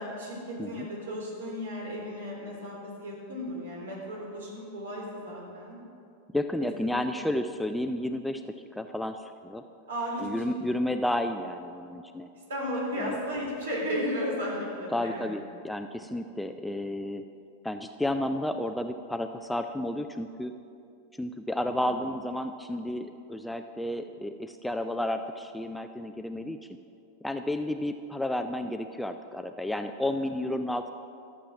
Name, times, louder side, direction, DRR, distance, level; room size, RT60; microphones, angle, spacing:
voice 1, 0.0-5.8 6.6-7.2 9.9-10.7 12.5-15.3 21.6-21.8 30.0-30.1, equal, 65° right, -3 dB, 3.4 m, -35 dB
voice 2, 6.3-9.6 10.2-12.3 13.0-13.2 14.9-17.2 17.6-20.5 21.2-26.6 27.2-30.9, left 1 dB, 5° left, 7 dB, 0.4 m, -32 dB
13.0 x 7.5 x 5.9 m, 2.6 s
figure-of-eight pair, 90°, 0 cm